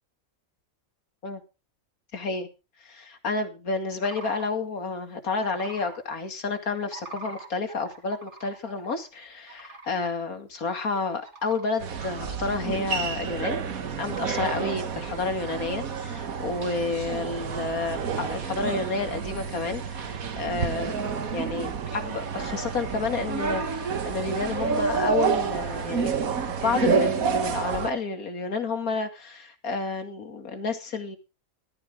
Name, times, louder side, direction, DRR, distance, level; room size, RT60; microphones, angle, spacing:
voice 1, 2.1-2.5 2.8-13.6 14.0-26.1 26.5-31.2, left 4 dB, 85° left, 2.6 m, -30 dB
sound 1, 4.0-4.5 5.3-6.0 6.8-9.1 9.5-10.1 10.5-10.6 11.1-11.7 12.3-14.2 14.5-14.9 15.3-15.8 16.3-16.4 16.9-17.7 18.3-19.0 19.3-19.8 20.1-20.7 21.8-22.4, right 3 dB, 55° right, 2.3 m, -47 dB
sound 2, 11.8-27.9, right 6 dB, 80° right, 1.7 m, -29 dB
14.0 x 13.0 x 3.6 m
omnidirectional pair, 1.5 m